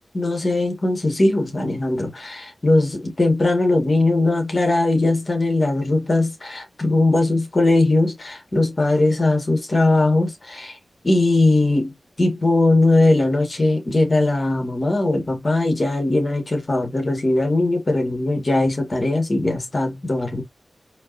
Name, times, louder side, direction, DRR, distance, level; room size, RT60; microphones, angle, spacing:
voice 1, 0.1-10.8 11.0-20.4, left 2 dB, 50° left, 1.6 m, -20 dB
4.3 x 2.9 x 2.6 m
cardioid pair, 50°, 0 cm